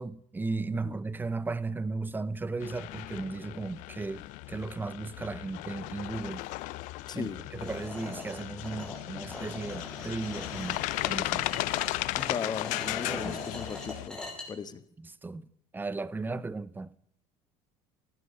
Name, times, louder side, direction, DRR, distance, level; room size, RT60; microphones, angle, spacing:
voice 1, 0.0-4.2 4.5-6.4 7.1-10.8 11.1-11.5 13.0-13.4 15.2-15.5 15.7-16.9, right 3 dB, 15° right, 0.7 m, -35 dB
sound 1, 2.6-14.1, left 19 dB, 70° left, 0.6 m, -36 dB
voice 2, 7.1-7.4 12.1-14.2 14.5-14.8 16.3-16.4, left 6 dB, 30° left, 1.2 m, -37 dB
sound 2, 7.6-14.4, left 2 dB, 5° left, 5.8 m, -42 dB
16.5 x 12.0 x 5.5 m
supercardioid pair, 105°, 13 cm